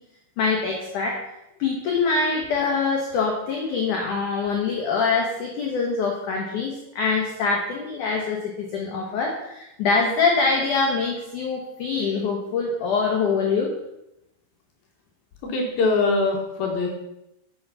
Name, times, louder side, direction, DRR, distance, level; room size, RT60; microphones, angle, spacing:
voice 1, 0.4-1.2 1.6-13.7, left 4 dB, 85° left, 0 dB, 1.7 m, -24 dB
voice 2, 15.4-16.9, left 3 dB, 70° left, 1 dB, 2.4 m, -22 dB
8.5 x 7.6 x 5.6 m, 0.88 s
omnidirectional pair, 5.5 m